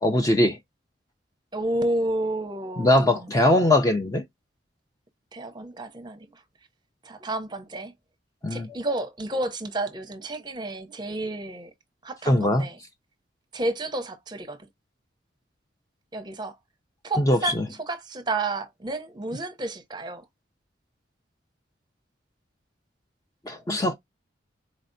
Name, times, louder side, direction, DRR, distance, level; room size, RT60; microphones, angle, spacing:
voice 1, 0.0-0.6 2.8-4.2 8.4-8.7 12.3-12.6 17.2-17.6 23.5-23.9, left 1 dB, 20° left, 0.4 m, -21 dB
voice 2, 1.5-3.4 5.3-6.3 7.0-7.9 8.5-11.7 12.0-12.8 13.5-14.6 16.1-16.6 17.0-20.2, right 2 dB, 20° right, 0.7 m, -31 dB
4.1 x 3.3 x 2.6 m
head